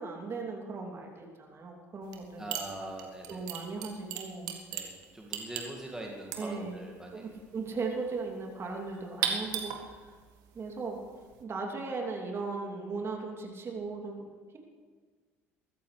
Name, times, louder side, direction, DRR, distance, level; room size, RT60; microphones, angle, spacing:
voice 1, 0.0-2.4 3.3-4.5 6.4-6.8 7.1-10.0 10.5-11.0 11.4-14.3, right 4 dB, 35° right, 1 dB, 3.0 m, -37 dB
sound 1, 2.0-2.3 2.5-11.4, right 8 dB, 60° right, 1.8 m, -38 dB
voice 2, 2.4-3.5 4.7-7.4, right 1 dB, 10° right, -1 dB, 2.2 m, -42 dB
22.5 x 14.0 x 3.4 m, 1.5 s
figure-of-eight pair, 60°, 8 cm